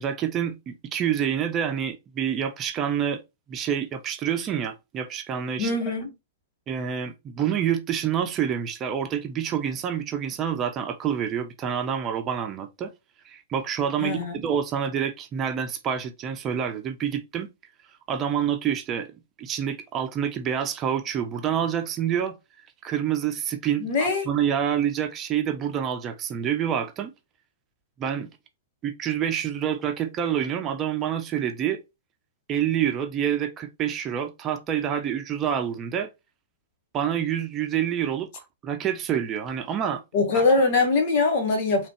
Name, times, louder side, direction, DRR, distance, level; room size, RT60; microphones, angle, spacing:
voice 1, 0.0-3.2 3.5-5.7 6.7-12.9 13.2-17.5 18.1-22.4 22.8-27.1 28.0-28.3 28.8-31.8 32.5-36.1 36.9-40.0 40.3-40.4, right 9 dB, 30° right, 0.7 m, -27 dB
voice 2, 5.6-6.1 14.0-14.3 23.8-24.3 40.1-41.9, left 3 dB, 50° left, 1.4 m, -22 dB
4.0 x 3.3 x 3.3 m
hypercardioid pair, 110°, 0 cm